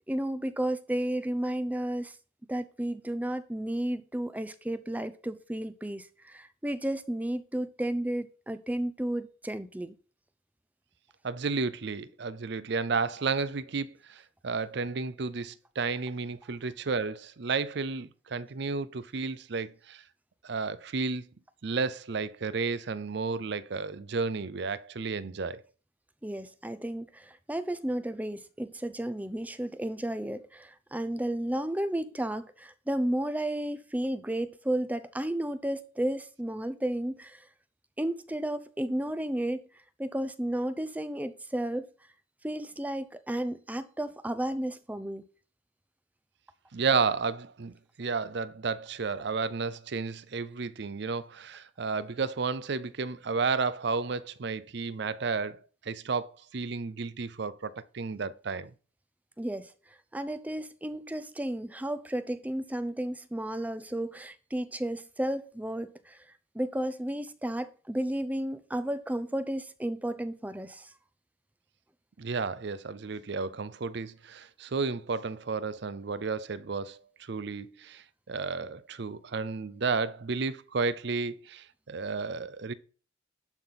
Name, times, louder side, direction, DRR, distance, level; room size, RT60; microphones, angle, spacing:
voice 1, 0.1-2.2 2.5-10.0 26.2-37.5 38.0-39.6 40.0-41.9 42.4-45.2 59.4-59.7 60.1-66.2 66.5-70.9, right 1 dB, 10° right, 0.5 m, -33 dB
voice 2, 11.2-20.0 20.4-21.3 21.6-25.6 46.7-58.7 72.2-82.7, right 4 dB, 55° right, 0.5 m, -32 dB
11.5 x 4.0 x 5.7 m
head